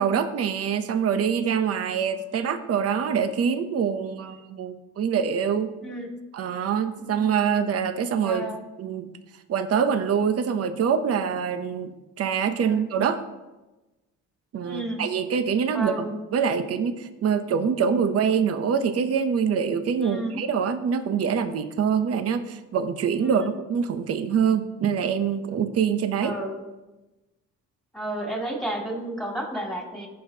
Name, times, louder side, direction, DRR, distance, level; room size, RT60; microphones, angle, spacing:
voice 1, 0.0-5.7 6.3-8.5 8.8-9.1 9.5-13.2 14.5-26.3, right 7 dB, 55° right, 10 dB, 0.8 m, -25 dB
voice 2, 7.0-7.3 8.2-8.6 12.6-12.9 14.6-15.0 15.7-16.2 20.0-20.4 23.2-23.5 26.2-26.6 27.9-30.1, right 1 dB, ahead, -1 dB, 2.6 m, -32 dB
15.5 x 5.5 x 2.8 m, 1.1 s
cardioid pair, 90°, 30 cm